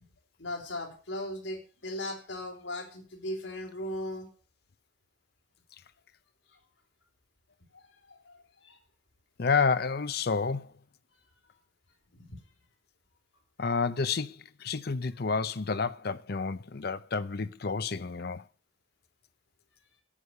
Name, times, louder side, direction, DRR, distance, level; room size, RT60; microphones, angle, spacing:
voice 1, 0.4-4.3 6.5-6.6 7.7-8.8 12.1-12.4, left 1 dB, 85° left, 3.7 m, -38 dB
voice 2, 9.4-10.7 13.6-18.4, left 5 dB, 60° left, 0.7 m, -30 dB
9.9 x 9.9 x 6.6 m
head